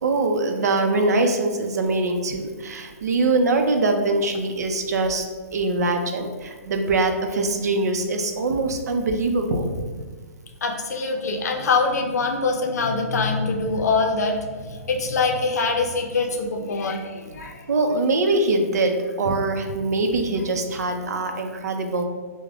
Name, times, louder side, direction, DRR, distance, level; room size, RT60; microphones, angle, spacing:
voice 1, 0.0-5.3 5.5-9.8 17.7-22.0, right 2 dB, 85° right, 5 dB, 0.5 m, -23 dB
voice 2, 10.6-14.4 14.7-17.6, left 4 dB, 90° left, 3 dB, 0.5 m, -24 dB
4.8 x 2.1 x 2.3 m, 1.5 s
hypercardioid pair, 175°, 9 cm